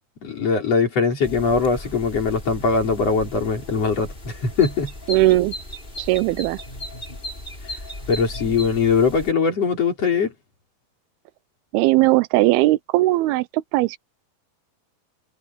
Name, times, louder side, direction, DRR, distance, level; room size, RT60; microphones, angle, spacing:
voice 1, 0.2-4.9 8.1-10.3, left 5 dB, 40° left, 4.9 m, -21 dB
sound 1, 1.2-9.3, left 1 dB, 15° left, 3.8 m, -36 dB
voice 2, 5.1-5.5 6.0-6.6 11.7-14.0, right 18 dB, 85° right, 2.6 m, -18 dB
omnidirectional pair, 4.4 m